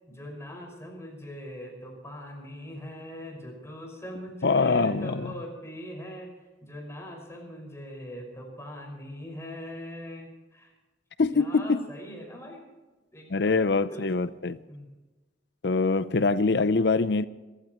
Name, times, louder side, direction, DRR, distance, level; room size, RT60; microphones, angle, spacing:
voice 1, 0.1-6.3 6.6-10.7 11.3-12.7 13.1-14.1 14.7-14.9, equal, 15° left, 5.6 m, -41 dB
voice 2, 4.4-5.3 11.2-11.8 13.3-14.6 15.6-17.2, left 4 dB, 65° left, 0.6 m, -24 dB
27.0 x 15.0 x 3.1 m
head